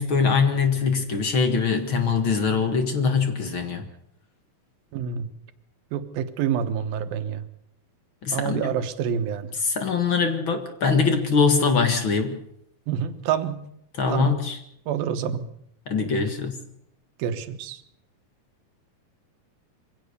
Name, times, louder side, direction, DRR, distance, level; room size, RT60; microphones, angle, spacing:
voice 1, 0.0-3.9 8.2-8.7 9.5-12.4 13.9-14.6 15.9-16.6, left 5 dB, 45° left, 7 dB, 1.9 m, -23 dB
voice 2, 4.9-5.3 5.9-7.4 8.3-9.5 12.9-13.6 14.1-14.4 14.9-15.4 17.2-17.8, right 8 dB, 75° right, 10 dB, 3.0 m, -27 dB
23.5 x 16.5 x 6.8 m, 0.74 s
omnidirectional pair, 4.3 m